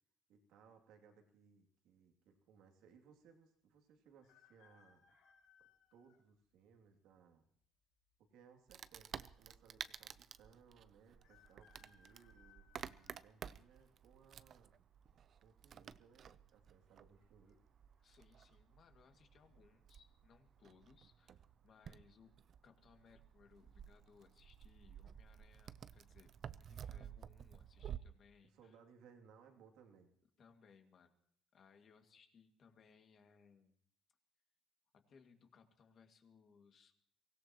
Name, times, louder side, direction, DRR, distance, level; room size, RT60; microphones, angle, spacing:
voice 1, 0.3-5.0 5.9-7.5 8.3-14.8 15.4-17.6 28.4-30.1, right 6 dB, 75° right, 3 dB, 2.7 m, -65 dB
sound 1, 4.2-6.2 6.9-7.0 8.1-8.7 9.0-9.1 9.3-9.4 11.2-13.8 14.4-14.8 15.9-16.3 16.5-16.6 17.1-17.5 18.0-18.2, left 7 dB, 90° left, 3.8 m, -69 dB
Wood, 8.7-28.0, right 8 dB, 45° right, 0.5 m, -53 dB
voice 2, 18.0-22.3 22.6-28.8 30.4-31.1 31.5-33.8 34.9-36.9, left 6 dB, 45° left, 5 dB, 2.1 m, -67 dB
23.5 x 16.5 x 3.0 m, 0.66 s
cardioid pair, 130°, 0 cm